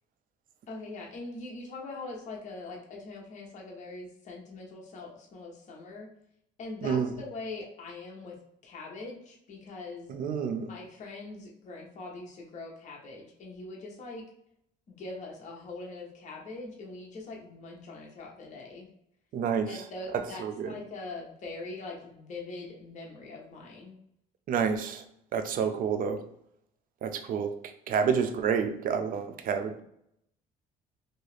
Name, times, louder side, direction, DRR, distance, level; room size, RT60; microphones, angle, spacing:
voice 1, 0.7-6.1 6.6-8.4 8.6-10.2 10.7-14.2 14.9-18.9 19.7-24.0, left 3 dB, 45° left, -2 dB, 0.8 m, -42 dB
voice 2, 6.8-7.1 10.1-10.7 19.3-19.8 20.4-20.8 24.5-25.0 25.3-26.2 27.0-27.5 27.9-29.7, right 6 dB, 55° right, 7 dB, 0.4 m, -29 dB
2.8 x 2.4 x 3.2 m, 0.74 s
cardioid pair, 110°, 17 cm